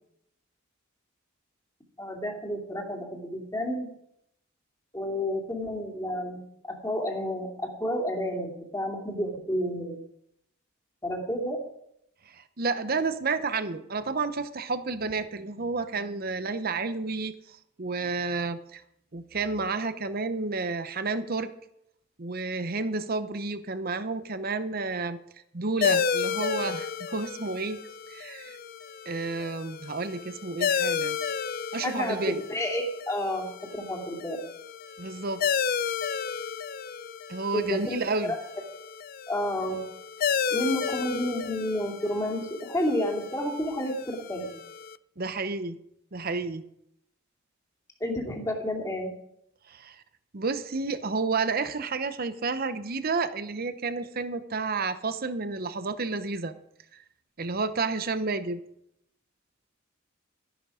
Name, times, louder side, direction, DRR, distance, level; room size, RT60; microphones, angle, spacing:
voice 1, 2.0-3.9 4.9-10.0 11.0-11.6 31.8-33.5 33.7-34.4 37.5-38.4 39.3-39.8 40.5-44.5 48.0-49.1, left 1 dB, 15° left, 0 dB, 2.5 m, -30 dB
voice 2, 12.3-18.8 19.1-21.5 22.2-25.2 25.5-27.8 28.1-28.6 29.1-31.2 31.7-32.4 35.0-35.4 37.3-38.3 45.2-45.8 46.1-46.6 49.7-50.0 50.3-56.5 56.9-57.0 57.4-58.6, right 3 dB, 45° right, 11 dB, 0.8 m, -31 dB
sound 1, 25.8-45.0, left 7 dB, 45° left, 0.4 m, -32 dB
13.0 x 11.0 x 5.0 m, 0.75 s
head